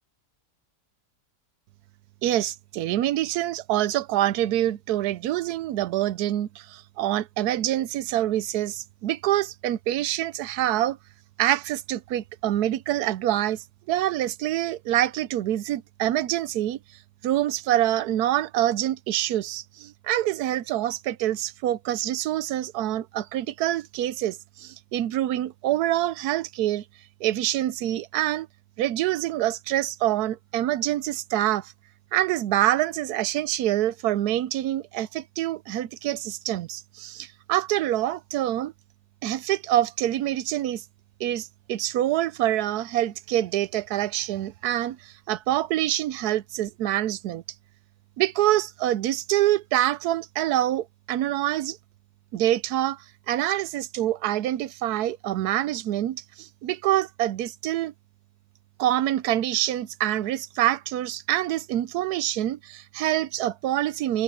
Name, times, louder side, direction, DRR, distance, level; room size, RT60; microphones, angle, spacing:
voice 1, 2.2-11.0 11.4-16.8 17.2-26.8 27.2-28.5 28.8-31.7 32.1-38.7 39.2-40.8 41.2-47.4 48.2-51.8 52.3-57.9 58.8-64.2, right 13 dB, 80° right, 1.2 m, -26 dB
open air
omnidirectional pair, 1.7 m